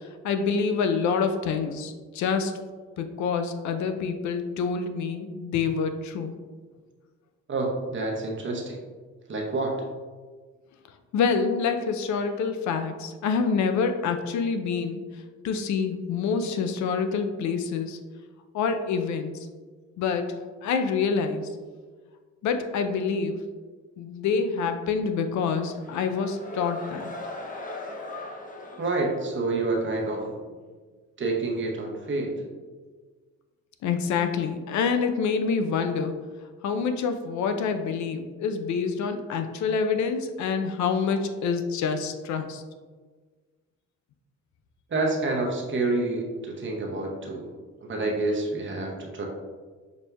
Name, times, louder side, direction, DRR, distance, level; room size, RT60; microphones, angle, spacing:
voice 1, 0.0-2.5 3.0-6.3 11.1-15.1 15.4-18.0 18.5-19.5 20.0-21.6 22.4-23.4 24.0-27.1 33.8-36.2 36.6-42.6, left 5 dB, 70° left, 7 dB, 0.4 m, -27 dB
voice 2, 7.5-8.8 9.3-9.7 28.8-30.4 31.2-32.5 44.9-47.5 47.8-49.3, right 2 dB, 40° right, 0 dB, 0.9 m, -28 dB
sound 1, 25.5-30.0, left 2 dB, 25° left, 0.6 m, -39 dB
5.9 x 2.6 x 2.3 m, 1.4 s
cardioid pair, 90°, 30 cm